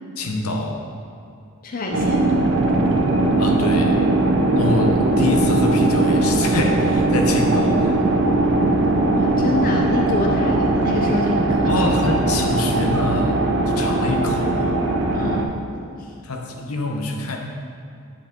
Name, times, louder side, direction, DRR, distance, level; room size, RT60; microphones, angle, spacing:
voice 1, 0.2-0.9 3.4-4.1 4.6-8.0 11.7-14.8 16.2-17.4, left 2 dB, 80° left, 2 dB, 0.8 m, -25 dB
voice 2, 1.6-2.3 9.1-11.7 15.1-16.1, left 2 dB, 40° left, 0 dB, 0.5 m, -27 dB
sound 1, 1.9-15.4, right 2 dB, 55° right, 0.6 m, -19 dB
9.0 x 5.1 x 3.7 m, 2.5 s
head